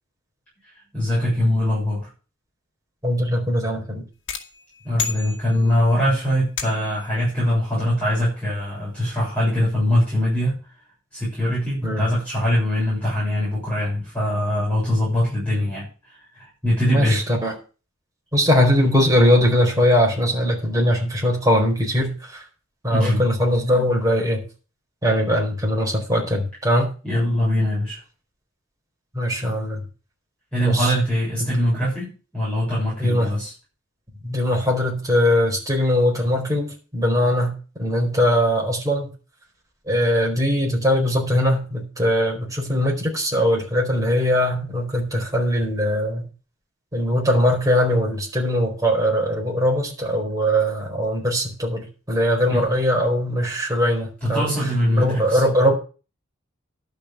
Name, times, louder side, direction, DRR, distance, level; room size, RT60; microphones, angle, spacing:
voice 1, 0.9-2.1 4.8-10.6 11.1-17.2 22.9-23.2 27.0-28.0 29.3-29.4 30.5-33.5 52.5-52.7 54.2-55.4, left 1 dB, 5° left, -9 dB, 7.4 m, -22 dB
voice 2, 3.0-4.0 11.8-12.0 16.9-17.5 18.3-22.4 22.8-24.4 25.0-26.9 29.1-29.8 30.6-30.9 31.4-31.5 33.0-33.3 34.2-37.5 37.8-39.1 39.9-46.2 46.9-54.5 55.0-55.7, equal, 15° right, -1 dB, 4.6 m, -21 dB
sound 1, 4.3-5.9 6.6-7.1, left 6 dB, 60° left, 2.1 m, -31 dB
12.0 x 5.6 x 8.8 m, 0.35 s
head